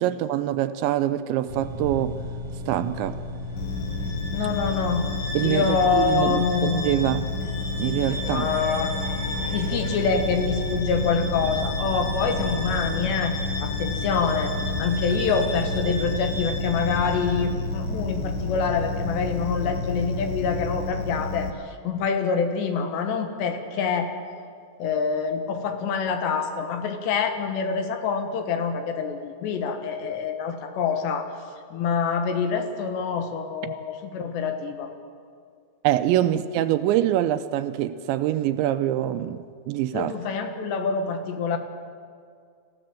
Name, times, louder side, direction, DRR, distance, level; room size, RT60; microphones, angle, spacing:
voice 1, 0.0-2.2 2.7-3.2 5.3-7.3 7.8-8.5 33.7-33.8 35.8-40.1, right 12 dB, 80° right, 2.8 m, -25 dB
sound 1, 1.5-20.8, equal, 40° right, 2.4 m, -34 dB
sound 2, 3.6-21.5, left 4 dB, 85° left, 1.6 m, -31 dB
Bowed string instrument, 3.6-17.4, left 1 dB, 55° left, 7.9 m, -36 dB
voice 2, 4.3-5.1 5.4-6.9 8.3-8.9 9.5-13.4 13.6-14.5 14.8-24.2 24.8-31.3 31.7-34.9 39.9-41.6, left 5 dB, 70° left, 3.4 m, -26 dB
26.0 x 15.5 x 7.6 m
omnidirectional pair, 5.5 m